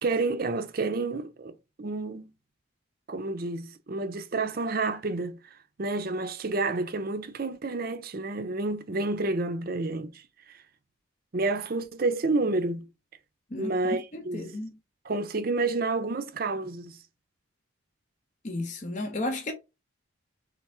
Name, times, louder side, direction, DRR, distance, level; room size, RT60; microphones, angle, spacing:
voice 1, 0.0-2.3 3.1-5.4 5.8-10.2 11.3-12.9 13.6-14.5 15.0-17.0, right 3 dB, 45° right, 0.5 m, -29 dB
voice 2, 13.5-14.8 18.4-19.5, left 2 dB, 35° left, 0.7 m, -33 dB
3.6 x 3.3 x 4.2 m
head